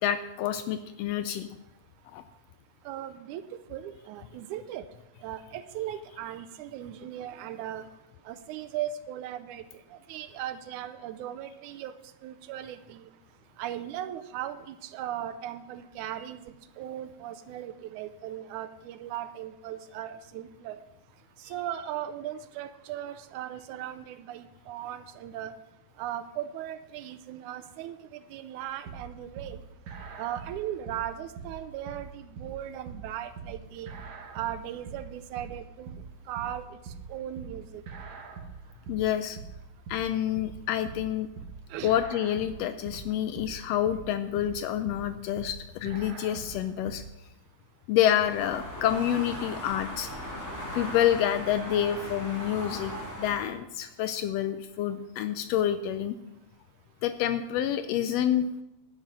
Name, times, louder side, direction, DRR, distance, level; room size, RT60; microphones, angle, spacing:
voice 1, 0.0-1.5 2.1-2.2 38.9-39.4 39.9-41.3 41.8-47.0 47.9-50.1 50.7-52.9 53.2-56.2 57.0-58.5, left 11 dB, 90° left, 10 dB, 1.4 m, -28 dB
voice 2, 2.9-3.4 3.7-4.9 5.2-7.9 8.3-9.6 10.1-11.9 12.2-13.1 13.6-20.8 21.5-25.5 26.0-29.6 30.2-33.9 34.3-36.0 36.3-36.7 37.1-37.8 41.7-41.9, right 11 dB, 85° right, 11 dB, 2.1 m, -38 dB
sound 1, 28.9-47.1, right 5 dB, 65° right, 2.5 m, -43 dB
sound 2, 48.2-53.5, equal, 5° left, 2.1 m, -38 dB
11.0 x 9.3 x 5.4 m, 0.90 s
omnidirectional pair, 3.5 m